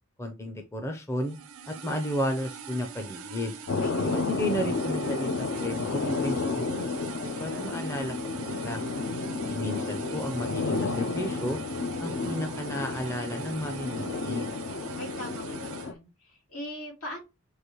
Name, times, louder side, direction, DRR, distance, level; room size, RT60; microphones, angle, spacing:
voice 1, 0.2-1.4 1.7-3.6 4.0-8.8 9.5-11.6 12.0-14.5, equal, 10° left, 0.5 m, -33 dB
sound 1, 1.2-15.9, right 5 dB, 80° right, 0.6 m, -42 dB
sound 2, 3.7-15.9, left 3 dB, 60° left, 0.5 m, -31 dB
voice 2, 15.0-17.2, left 1 dB, 80° left, 2.4 m, -40 dB
6.5 x 2.5 x 3.0 m
head